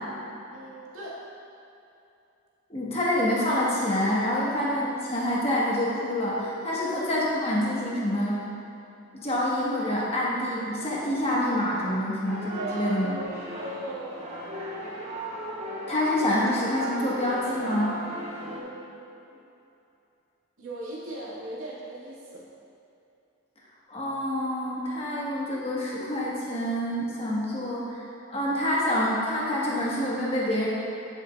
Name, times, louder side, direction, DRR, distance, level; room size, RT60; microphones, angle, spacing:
voice 1, 0.5-1.2 6.7-7.0 12.6-14.2 18.5-19.4 20.6-22.4, right 1 dB, 75° right, -7 dB, 1.7 m, -38 dB
voice 2, 2.7-8.4 9.2-13.2 15.9-17.9 23.9-28.0 28.3-30.7, left 1 dB, 25° left, -6 dB, 1.2 m, -27 dB
sound 1, 12.2-18.6, right 1 dB, 30° right, 0.8 m, -36 dB
10.5 x 6.5 x 2.3 m, 2.8 s
head